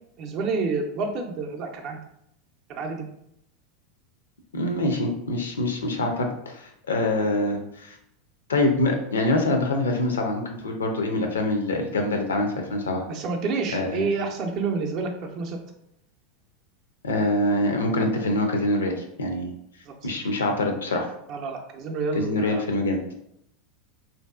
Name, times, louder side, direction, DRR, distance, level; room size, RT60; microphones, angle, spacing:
voice 1, 0.2-2.0 2.7-3.1 13.1-15.6 19.9-20.1 21.3-22.6, right 4 dB, 45° right, 3 dB, 0.5 m, -29 dB
voice 2, 4.5-8.0 8.5-13.0 13.7-14.0 17.0-19.5 20.0-21.1 22.1-23.0, left 1 dB, 80° left, 4 dB, 0.4 m, -25 dB
2.6 x 2.3 x 2.3 m, 0.76 s
figure-of-eight pair, 85°, 0 cm